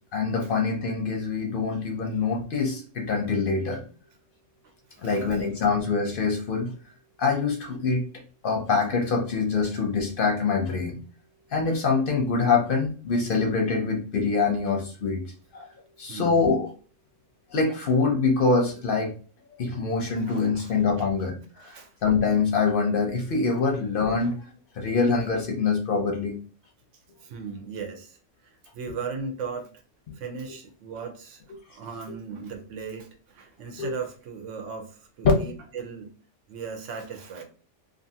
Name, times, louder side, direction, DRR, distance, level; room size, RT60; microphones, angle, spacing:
voice 1, 0.1-3.8 5.0-6.7 7.2-8.1 8.4-11.0 11.5-15.2 15.5-15.7 16.0-16.7 17.5-19.1 19.6-21.4 21.6-21.7 22.0-24.5 24.8-26.4 33.8-33.9, left 4 dB, 60° left, 0 dB, 0.6 m, -24 dB
voice 2, 4.9-5.5 16.1-16.4 20.3-21.1 21.6-21.9 24.2-24.3 27.2-28.2 28.7-29.7 30.2-31.4 31.7-36.1 36.5-37.4, right 5 dB, 85° right, 5 dB, 1.0 m, -37 dB
2.5 x 2.5 x 2.6 m, 0.40 s
omnidirectional pair, 1.3 m